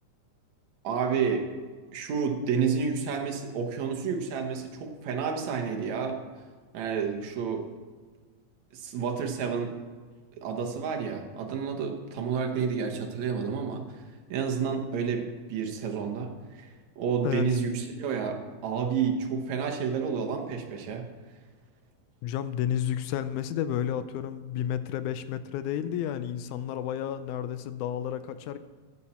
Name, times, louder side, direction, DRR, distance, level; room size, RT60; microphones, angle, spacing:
voice 1, 0.8-1.5 1.9-6.2 6.7-7.6 8.7-9.7 10.4-14.0 14.3-21.1 25.8-25.9, right 6 dB, 70° right, 3 dB, 2.2 m, -30 dB
voice 2, 22.2-28.6, left 10 dB, 80° left, 12 dB, 1.9 m, -31 dB
14.0 x 8.7 x 4.3 m, 1.5 s
omnidirectional pair, 3.6 m